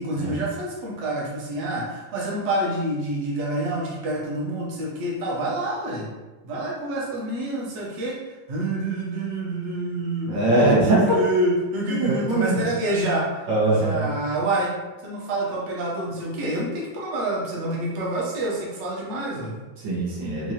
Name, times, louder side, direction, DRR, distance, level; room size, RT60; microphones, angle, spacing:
voice 1, 0.0-6.1 6.4-8.2 8.5-10.4 10.7-14.7 15.0-19.6, right 1 dB, 50° right, -5 dB, 1.0 m, -27 dB
voice 2, 10.3-11.2 12.0-12.7 13.5-14.1 19.8-20.5, right 2 dB, 85° right, -6 dB, 1.9 m, -21 dB
4.6 x 2.5 x 2.9 m, 1.2 s
omnidirectional pair, 2.1 m